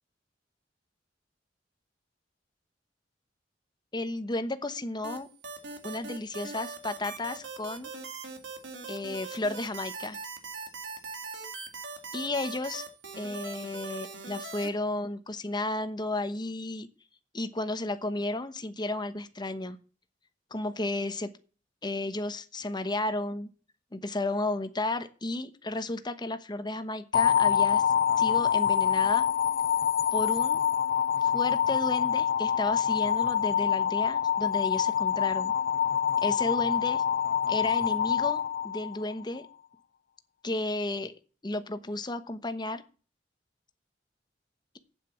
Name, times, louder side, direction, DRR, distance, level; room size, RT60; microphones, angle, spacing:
voice 1, 3.9-5.3 5.8-7.9 8.9-10.2 12.1-12.9 13.2-16.9 17.3-19.8 20.5-21.3 21.8-23.5 23.9-27.8 28.2-29.3 30.1-30.6 31.2-35.5 36.2-37.0 37.5-39.5 40.4-41.1 41.4-42.8, left 2 dB, 25° left, 10 dB, 1.0 m, -33 dB
sound 1, 5.0-14.7, right 4 dB, 75° right, 1.9 m, -41 dB
sound 2, 27.1-39.3, left 9 dB, 55° left, 0.6 m, -26 dB
8.4 x 7.8 x 7.2 m, 0.37 s
head